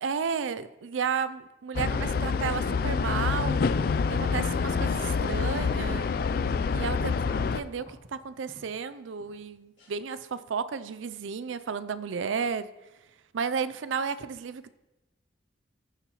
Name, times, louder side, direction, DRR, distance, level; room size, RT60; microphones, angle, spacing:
voice 1, 0.0-3.7 4.1-6.1 6.7-12.7 13.3-14.7, right 6 dB, 90° right, 14 dB, 0.4 m, -33 dB
sound 1, 1.7-7.6, left 5 dB, 50° left, 0.3 m, -27 dB
sound 2, 7.8-8.8 9.2-9.5 9.8-9.9, equal, 85° left, 3.1 m, -52 dB
15.0 x 6.7 x 3.0 m, 1.0 s
head